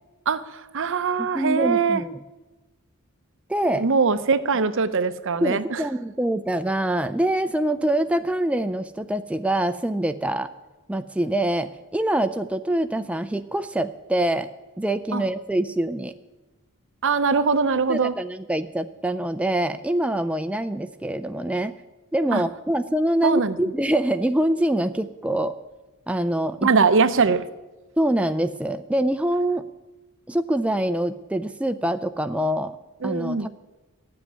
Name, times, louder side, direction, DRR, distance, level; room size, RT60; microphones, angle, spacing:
voice 1, 0.3-2.0 3.8-5.8 15.1-15.2 17.0-18.1 22.3-22.4 23.2-23.6 26.6-27.5 33.0-33.5, right 5 dB, 60° right, 13 dB, 0.7 m, -22 dB
voice 2, 1.2-2.1 3.5-3.9 5.4-10.5 10.9-14.5 14.8-16.1 17.9-21.7 22.1-25.5 26.1-26.7 28.0-29.7 30.3-32.8 33.0-33.5, right 1 dB, 5° right, 9 dB, 0.4 m, -25 dB
13.5 x 7.8 x 9.8 m, 1.2 s
head